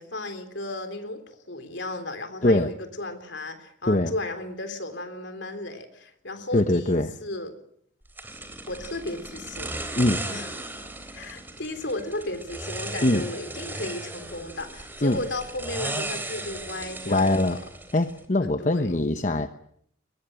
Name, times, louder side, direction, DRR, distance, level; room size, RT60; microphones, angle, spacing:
voice 1, 0.0-7.6 8.7-9.7 10.3-10.5 11.1-17.6 18.4-19.0, left 2 dB, 60° left, 8 dB, 3.7 m, -35 dB
voice 2, 6.5-7.2 10.0-10.3 13.0-13.3 15.0-15.2 17.1-17.6 17.9-19.5, left 1 dB, 40° left, 9 dB, 1.0 m, -22 dB
sound 1, 8.2-18.3, right 2 dB, 10° right, 3.4 m, -36 dB
22.0 x 21.5 x 9.0 m, 0.67 s
head